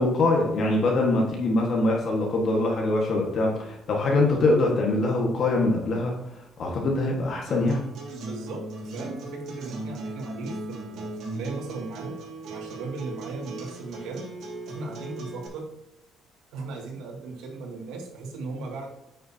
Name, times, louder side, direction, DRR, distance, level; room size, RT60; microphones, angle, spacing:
voice 1, 0.0-6.1 6.6-7.8, left 2 dB, 45° left, -1 dB, 1.6 m, -23 dB
Acoustic guitar, 7.5-15.5, right 2 dB, 65° right, 2.8 m, -38 dB
voice 2, 8.2-12.1 12.5-14.2 14.7-15.6 16.5-18.9, right 3 dB, 90° right, -1 dB, 2.3 m, -37 dB
9.4 x 6.6 x 2.9 m, 0.89 s
cardioid pair, 145°, 0 cm